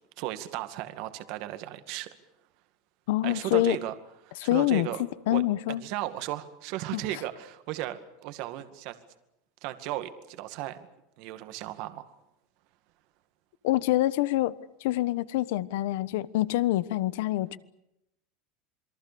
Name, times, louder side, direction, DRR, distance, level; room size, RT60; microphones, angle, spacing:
voice 1, 0.2-2.1 3.2-3.9 4.2-5.0 5.3-5.4 5.8-9.0 9.6-10.8 11.2-12.1, right 14 dB, 55° right, 2.1 m, -35 dB
voice 2, 3.1-3.8 4.4-4.9 5.3-5.8 6.9-7.0 13.6-14.5 14.8-17.6, left 16 dB, 75° left, 1.1 m, -26 dB
28.0 x 23.0 x 7.0 m
supercardioid pair, 155°, 0 cm